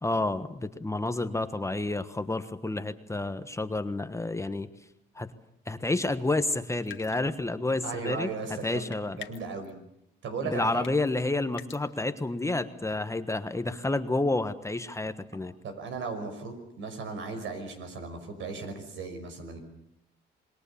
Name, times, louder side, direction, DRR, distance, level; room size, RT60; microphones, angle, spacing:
voice 1, 0.0-4.7 5.1-5.3 5.7-8.3 8.6-9.2 10.4-15.5, left 2 dB, 15° left, 10 dB, 1.3 m, -30 dB
sound 1, 6.9-7.5 8.9-9.7 10.8-11.1 11.5-11.8, left 12 dB, 80° left, 1.8 m, -45 dB
voice 2, 7.8-8.8 9.1-9.8 10.2-10.9 15.6-19.6, right 4 dB, 75° right, 6 dB, 5.7 m, -36 dB
27.5 x 21.0 x 7.0 m, 0.78 s
cardioid pair, 90°, 20 cm